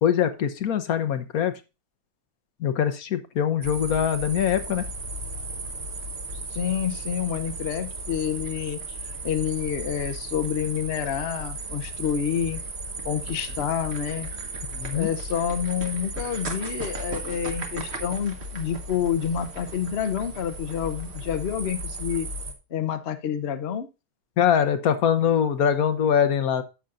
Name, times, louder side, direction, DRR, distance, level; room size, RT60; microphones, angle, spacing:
voice 1, 0.0-1.5 2.6-4.8 14.7-15.1 24.4-26.6, left 8 dB, 70° left, 11 dB, 1.3 m, -23 dB
sound 1, 3.6-22.5, right 2 dB, 45° right, 1.6 m, -35 dB
voice 2, 6.5-8.8 9.0-12.6 13.0-14.3 14.9-22.3 22.7-23.9, left 9 dB, 50° left, 8 dB, 0.9 m, -28 dB
11.0 x 7.2 x 2.5 m, 0.28 s
omnidirectional pair, 1.6 m